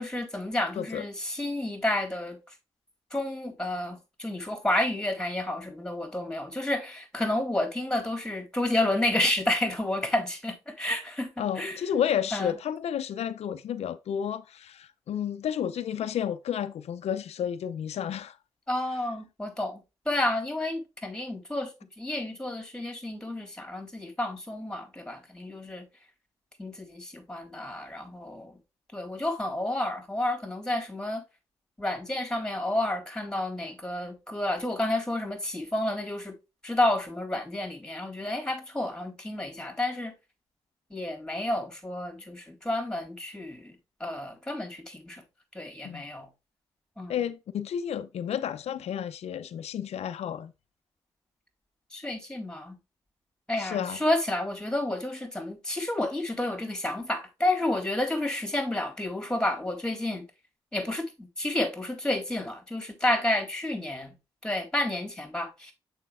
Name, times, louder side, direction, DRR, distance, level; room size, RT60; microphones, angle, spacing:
voice 1, 0.0-2.4 3.1-11.8 12.3-12.5 18.7-19.8 20.1-21.7 22.0-25.9 26.6-28.6 28.9-31.2 31.8-36.3 36.6-40.1 40.9-43.7 44.0-45.2 45.5-46.3 47.0-47.2 51.9-52.8 53.5-60.2 60.7-64.1 64.4-65.7, left 1 dB, 5° left, 3.6 m, -30 dB
voice 2, 11.4-18.4 45.8-46.1 47.1-50.5 53.6-54.0, left 9 dB, 75° left, 0.6 m, -31 dB
6.7 x 5.7 x 3.6 m
supercardioid pair, 45°, 11 cm